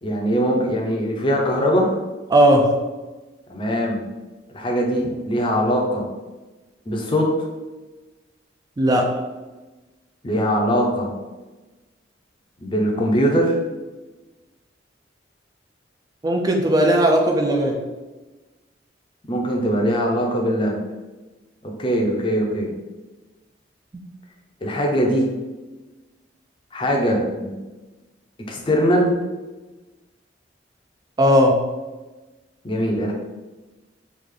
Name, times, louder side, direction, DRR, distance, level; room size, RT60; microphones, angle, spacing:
voice 1, 0.0-2.0 3.5-4.0 4.5-6.1 6.9-7.5 10.2-11.1 12.6-13.6 19.3-20.8 21.6-22.7 24.6-25.2 26.7-27.6 28.5-29.2 32.6-33.1, equal, 30° left, 0 dB, 0.5 m, -21 dB
voice 2, 2.3-2.7 8.8-9.1 16.2-17.8 31.2-31.6, equal, 20° right, 3 dB, 0.3 m, -17 dB
3.2 x 2.4 x 3.6 m, 1.2 s
head